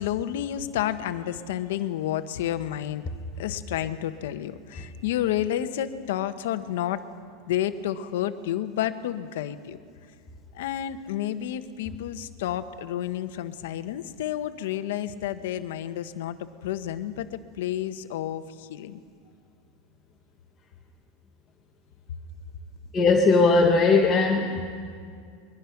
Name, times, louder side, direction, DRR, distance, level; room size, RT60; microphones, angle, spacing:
voice 1, 0.0-3.0 3.4-7.0 7.5-9.8 10.5-16.4 16.6-19.0, left 11 dB, 75° left, 10 dB, 1.0 m, -30 dB
voice 2, 22.9-24.8, left 3 dB, 20° left, 0 dB, 1.2 m, -20 dB
22.0 x 21.5 x 5.9 m, 2.2 s
supercardioid pair, 165°, 0 cm